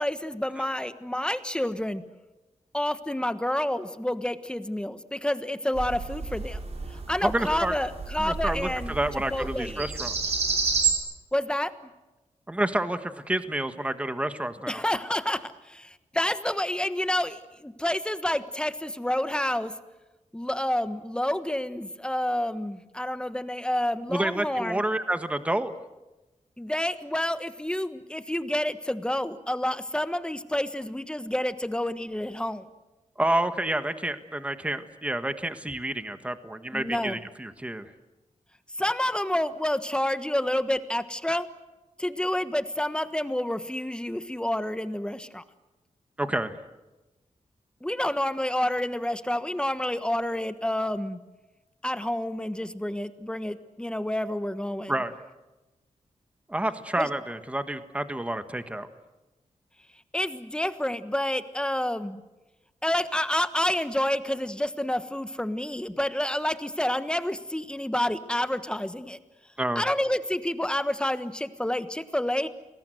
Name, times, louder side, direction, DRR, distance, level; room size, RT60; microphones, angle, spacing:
voice 1, 0.0-2.0 2.7-6.6 6.9-8.9 9.3-9.9 11.3-11.7 14.7-19.7 20.3-24.8 26.6-32.7 36.7-37.2 38.8-41.5 42.0-45.4 47.8-51.2 51.8-54.9 57.0-57.1 60.1-62.2 62.8-69.2 69.7-72.5, left 1 dB, 5° left, 11 dB, 1.3 m, -29 dB
sound 1, 5.7-10.9, right 4 dB, 55° right, 4.8 m, -30 dB
voice 2, 7.2-7.7 8.2-10.3 12.5-14.8 24.1-25.7 33.2-37.9 46.2-46.6 54.9-55.1 56.5-58.9 69.6-69.8, right 1 dB, 10° right, 9 dB, 1.5 m, -29 dB
29.5 x 21.5 x 7.8 m, 1.1 s
wide cardioid pair, 125°, 13 cm